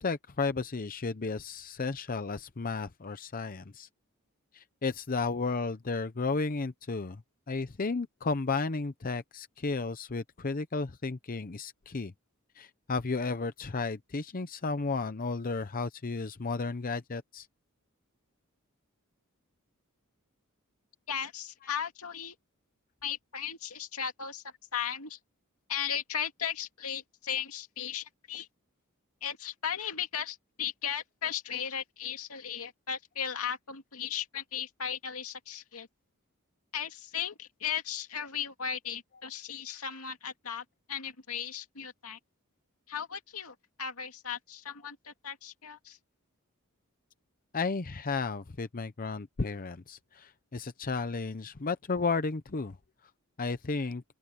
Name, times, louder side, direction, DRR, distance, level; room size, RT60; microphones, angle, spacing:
voice 1, 0.0-3.9 4.5-7.2 7.5-12.1 12.6-17.5 47.5-52.8 53.4-54.0, left 4 dB, 40° left, 0.7 m, -33 dB
voice 2, 21.1-22.4 23.0-25.2 25.7-28.5 29.2-35.9 36.7-42.2 42.9-46.0, left 8 dB, 85° left, 2.3 m, -36 dB
open air
head